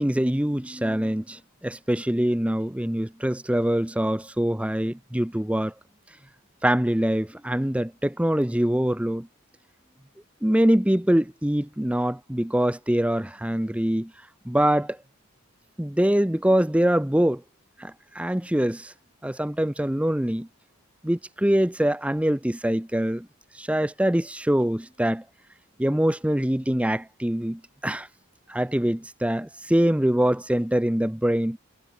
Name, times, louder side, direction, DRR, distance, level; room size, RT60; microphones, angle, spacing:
voice 1, 0.0-5.7 6.6-9.3 10.4-14.1 14.5-15.0 15.8-17.4 17.8-18.9 19.2-20.5 21.0-23.3 23.5-25.2 25.8-28.1 28.5-31.6, right 1 dB, 5° right, 0.6 m, -24 dB
head